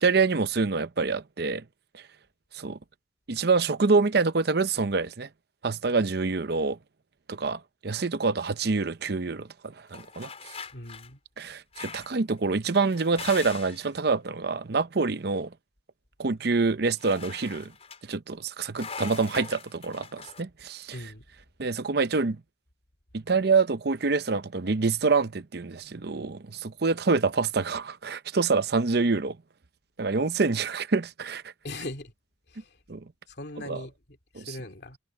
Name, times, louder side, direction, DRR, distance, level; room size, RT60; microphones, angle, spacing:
voice 1, 0.0-1.6 1.9-2.0 2.5-2.8 3.3-5.3 5.6-6.8 7.3-10.3 11.4-15.5 16.2-17.7 18.1-21.0 21.6-22.4 23.1-29.4 30.0-31.4 32.9-33.0 33.7-33.8 34.4-34.5, right 4 dB, 60° right, 0.7 m, -26 dB
sound 1, 9.9-11.1 11.7-12.2 12.7-13.9 17.0-18.0 18.7-20.4, left 5 dB, 35° left, 4.7 m, -41 dB
voice 2, 10.7-11.2 20.9-21.3 31.6-32.1 32.5-32.8 33.3-35.0, left 2 dB, 65° left, 2.6 m, -40 dB
head